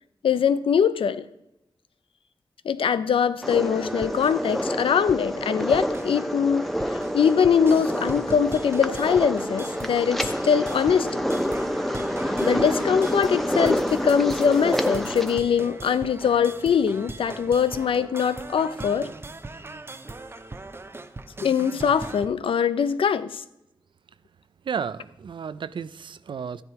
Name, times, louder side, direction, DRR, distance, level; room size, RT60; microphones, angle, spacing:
voice 1, 0.2-1.2 2.6-6.7 7.1-11.2 12.4-19.1 21.4-23.4, left 7 dB, 85° left, 14 dB, 0.6 m, -22 dB
sound 1, 3.4-15.4, equal, ahead, 0.9 m, -28 dB
sound 2, 3.7-22.3, right 2 dB, 25° right, 0.7 m, -40 dB
voice 2, 24.6-26.6, right 6 dB, 65° right, 16 dB, 0.5 m, -32 dB
13.0 x 9.7 x 4.7 m, 0.86 s
wide cardioid pair, 85°, 9 cm